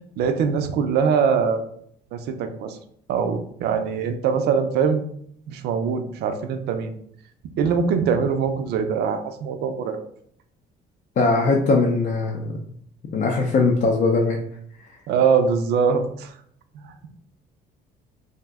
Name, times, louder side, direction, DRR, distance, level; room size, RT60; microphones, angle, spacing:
voice 1, 0.2-1.6 2.1-2.8 3.1-5.0 5.5-6.9 7.6-10.0 15.1-16.3 16.7-16.8, right 6 dB, 75° right, 7 dB, 0.4 m, -22 dB
voice 2, 11.2-12.6 13.1-14.4, left 3 dB, 50° left, 0 dB, 0.5 m, -20 dB
2.6 x 2.1 x 3.4 m, 0.65 s
cardioid pair, 110°, 17 cm